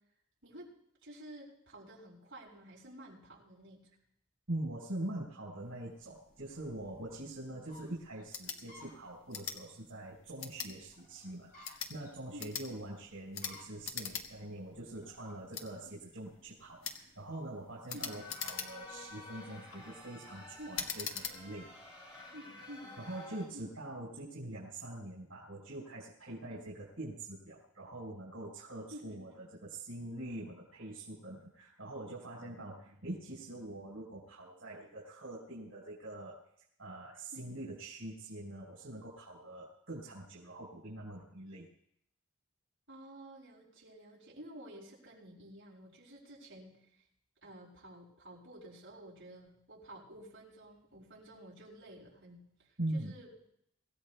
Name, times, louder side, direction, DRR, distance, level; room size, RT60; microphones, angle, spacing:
voice 1, 0.4-0.7 1.0-3.9 7.5-7.6 10.6-10.8 12.3-12.7 15.9-16.0 17.9-18.1 20.6-20.8 22.3-23.0 23.5-23.7 26.5-26.7 28.9-29.4 37.3-37.5 42.9-47.0 47.4-53.3, right 1 dB, 65° right, -5 dB, 7.3 m, -52 dB
voice 2, 4.5-21.7 23.0-36.4 36.8-41.7 52.8-53.1, right 1 dB, 90° right, -5 dB, 4.7 m, -44 dB
sound 1, 5.6-23.6, left 1 dB, 50° left, 4.8 m, -63 dB
sound 2, 8.3-8.6 9.3-9.6 10.4-10.7 11.5-11.9 12.4-12.7 13.3-13.5 13.8-14.3 14.6-14.7 15.5-15.7 16.8-17.0 17.9-18.9 19.5-19.8 20.7-21.4, left 7 dB, 90° left, 1.6 m, -40 dB
sound 3, 17.9-23.4, left 2 dB, 25° left, 4.7 m, -51 dB
25.0 x 16.0 x 2.4 m, 0.73 s
head